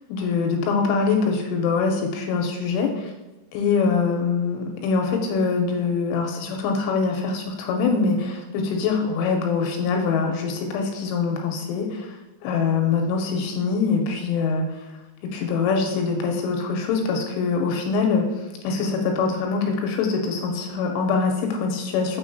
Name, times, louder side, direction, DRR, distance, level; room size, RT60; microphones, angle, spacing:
voice 1, 0.1-3.1 3.5-12.1 12.4-14.6 15.3-18.3 18.6-22.2, left 5 dB, 80° left, 3 dB, 3.0 m, -23 dB
7.0 x 6.0 x 2.6 m, 1.2 s
omnidirectional pair, 5.9 m